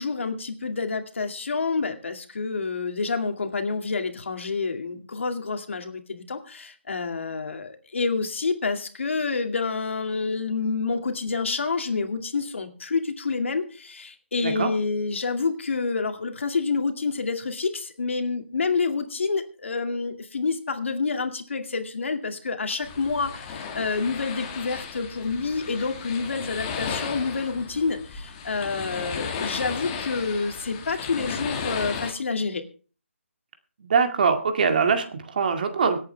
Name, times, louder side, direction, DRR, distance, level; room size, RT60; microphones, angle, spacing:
voice 1, 0.0-32.6, left 4 dB, 65° left, 5 dB, 2.3 m, -28 dB
voice 2, 14.4-14.7 33.8-36.0, right 5 dB, 40° right, 6 dB, 2.1 m, -23 dB
sound 1, 22.8-32.1, left 6 dB, 20° left, 1.8 m, -35 dB
25.0 x 8.6 x 3.4 m, 0.38 s
hypercardioid pair, 170°, 7 cm